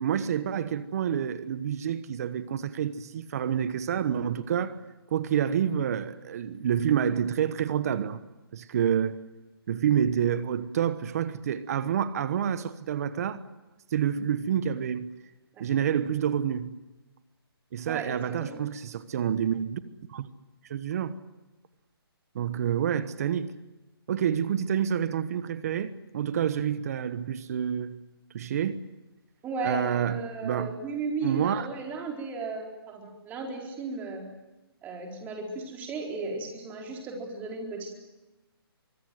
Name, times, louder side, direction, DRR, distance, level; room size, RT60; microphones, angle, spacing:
voice 1, 0.0-4.8 5.1-8.2 8.5-9.2 9.7-13.4 13.9-15.1 15.6-16.7 17.7-19.8 20.1-20.3 20.7-21.1 22.3-23.5 24.1-28.0 28.3-28.8 29.6-30.7 31.2-31.7, right 9 dB, 40° right, 1.2 m, -28 dB
voice 2, 17.9-18.6 29.4-34.2 34.8-37.9, right 3 dB, 15° right, 4.4 m, -35 dB
24.5 x 22.5 x 7.9 m
hypercardioid pair, 160°, 13 cm